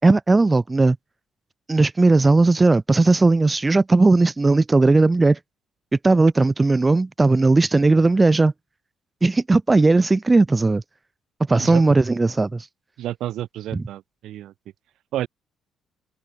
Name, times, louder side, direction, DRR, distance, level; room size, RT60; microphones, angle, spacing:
voice 1, 0.0-1.0 1.7-5.4 6.0-8.5 9.2-10.8 11.5-12.6 13.7-13.8, right 3 dB, 15° right, 4.8 m, -17 dB
voice 2, 13.0-14.5 15.1-15.3, right 13 dB, 65° right, 7.9 m, -30 dB
open air
cardioid pair, 160°, 0 cm